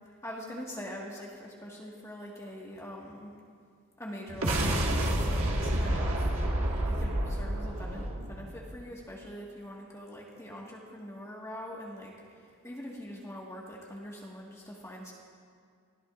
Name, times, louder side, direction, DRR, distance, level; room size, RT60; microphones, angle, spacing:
voice 1, 0.2-3.3 4.0-6.3 6.9-15.1, equal, 15° left, -4 dB, 1.6 m, -43 dB
sound 1, 4.3-8.8, right 1 dB, 65° right, 1.7 m, -29 dB
25.5 x 16.5 x 2.5 m, 2.1 s
head